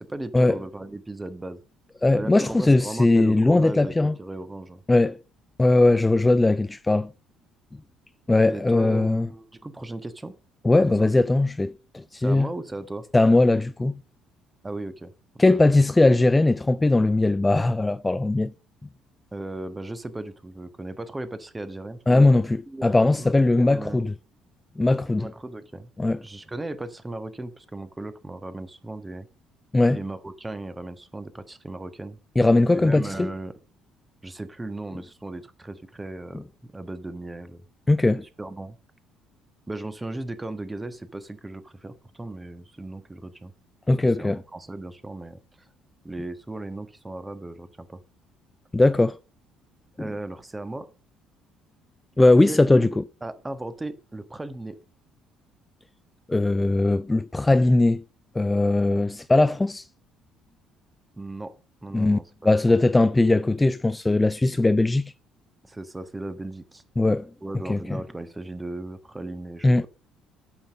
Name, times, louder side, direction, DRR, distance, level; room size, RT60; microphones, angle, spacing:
voice 1, 0.0-1.6 2.1-4.8 8.5-10.3 10.9-11.1 12.2-13.0 14.6-15.8 19.3-22.4 22.7-24.1 25.2-25.9 26.2-29.3 29.9-32.2 32.7-33.5 34.2-37.6 38.2-38.8 39.7-43.5 43.9-45.4 46.0-48.0 50.0-50.9 52.4-52.9 53.2-54.8 61.1-61.5 61.8-62.5 65.7-66.8 67.4-69.9, right 2 dB, 15° right, 1.4 m, -36 dB
voice 2, 2.0-4.1 4.9-5.2 5.6-7.1 8.3-9.3 10.6-12.5 13.1-14.0 15.4-18.5 22.1-24.1 24.8-25.3 26.0-26.2 29.7-30.0 32.4-33.3 37.9-38.2 43.9-44.4 48.7-49.2 50.0-50.1 52.2-52.9 56.3-58.0 58.4-59.8 61.9-62.2 62.4-65.1 67.0-67.3 67.7-68.0 69.6-69.8, left 2 dB, 15° left, 0.4 m, -20 dB
8.8 x 5.8 x 6.4 m
hypercardioid pair, 55°, 0 cm